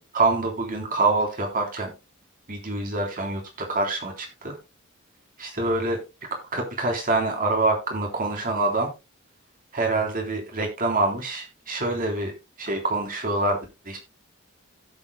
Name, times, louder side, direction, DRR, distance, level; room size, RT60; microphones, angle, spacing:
voice 1, 0.0-2.0 2.5-4.6 5.4-6.0 6.3-8.9 9.7-13.6 13.9-14.0, right 2 dB, 45° right, 2 dB, 3.5 m, -26 dB
16.5 x 7.7 x 2.2 m, 0.26 s
head